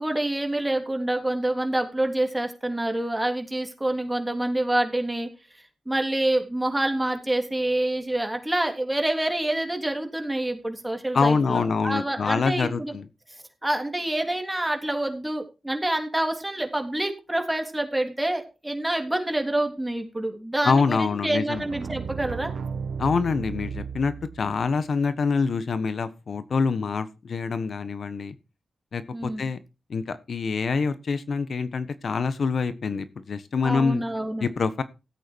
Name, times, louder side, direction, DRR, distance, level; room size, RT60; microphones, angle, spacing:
voice 1, 0.0-5.3 5.8-12.9 13.6-22.5 29.1-29.4 33.6-34.5, right 1 dB, 15° right, 4 dB, 3.3 m, -27 dB
voice 2, 11.1-13.1 20.6-21.7 23.0-28.3 28.9-29.6 29.9-34.0 34.4-34.8, left 5 dB, 65° left, 13 dB, 1.3 m, -25 dB
sound 1, 21.5-24.7, right 6 dB, 75° right, 1.4 m, -34 dB
15.0 x 8.5 x 4.6 m, 0.30 s
cardioid pair, 65°, 0 cm